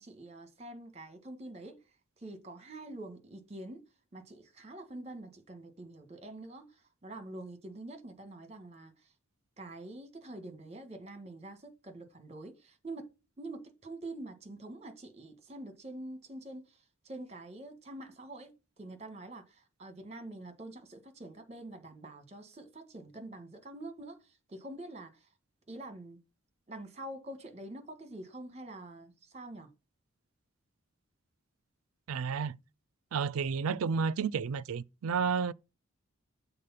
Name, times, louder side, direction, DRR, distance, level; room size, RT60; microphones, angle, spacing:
voice 1, 0.0-1.8 2.2-3.8 4.1-9.1 9.6-13.1 13.4-25.3 25.7-26.2 26.7-29.7, right 2 dB, 30° right, 1.4 m, -46 dB
voice 2, 32.1-32.6 33.1-35.5, right 6 dB, 85° right, 0.4 m, -31 dB
6.7 x 4.1 x 5.7 m
head